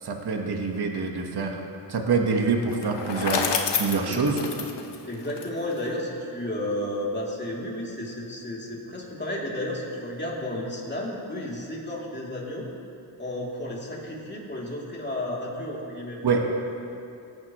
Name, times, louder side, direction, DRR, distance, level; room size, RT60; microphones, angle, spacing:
voice 1, 0.0-1.6 1.9-3.5 3.8-4.4 16.2-16.5, right 4 dB, 55° right, 2 dB, 1.3 m, -25 dB
Bicycle, 2.7-5.9, left 6 dB, 65° left, 1.0 m, -29 dB
voice 2, 5.0-12.7 13.2-16.2 16.5-16.6, left 1 dB, 25° left, -4 dB, 2.8 m, -32 dB
17.5 x 9.5 x 3.0 m, 2.6 s
cardioid pair, 65°, 45 cm